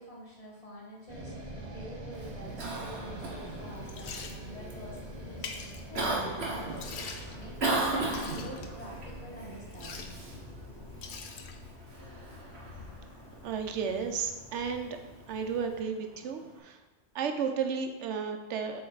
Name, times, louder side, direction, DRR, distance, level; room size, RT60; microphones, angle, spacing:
voice 1, 0.0-10.3, equal, 30° left, -4 dB, 1.6 m, -47 dB
sound 1, 1.1-15.3, right 1 dB, 40° right, 0.9 m, -46 dB
Cough, 2.1-16.6, right 2 dB, 65° right, 1.4 m, -38 dB
Liquid, 3.5-15.8, left 6 dB, 70° left, 0.9 m, -47 dB
voice 2, 13.4-14.9 15.3-16.8 17.1-18.8, right 6 dB, 90° right, 6 dB, 1.0 m, -33 dB
7.6 x 3.9 x 4.0 m, 1.2 s
omnidirectional pair, 1.2 m